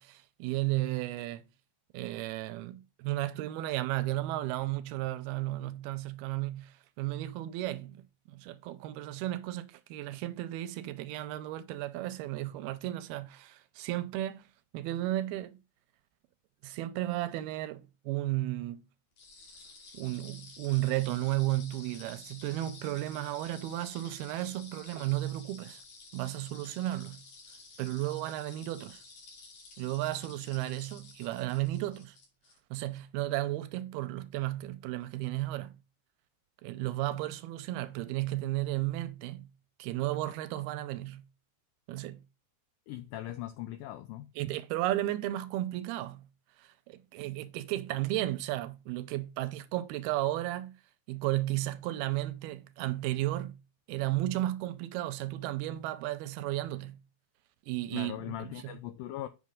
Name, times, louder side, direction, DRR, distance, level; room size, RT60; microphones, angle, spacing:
voice 1, 0.0-1.4 1.9-8.0 8.3-14.5 14.7-15.6 16.6-18.8 19.9-25.8 26.1-27.2 27.8-29.0 29.8-32.2 32.7-35.7 36.6-39.5 39.8-41.2 41.9-42.2 44.4-46.3 46.6-50.7 51.1-53.6 53.9-57.0 57.7-58.8, right 16 dB, 85° right, 2.4 m, -34 dB
sound 1, 19.2-32.6, left 4 dB, 55° left, 3.8 m, -52 dB
voice 2, 42.9-44.3 57.9-59.3, left 13 dB, 90° left, 1.9 m, -40 dB
8.4 x 5.8 x 3.5 m
omnidirectional pair, 4.6 m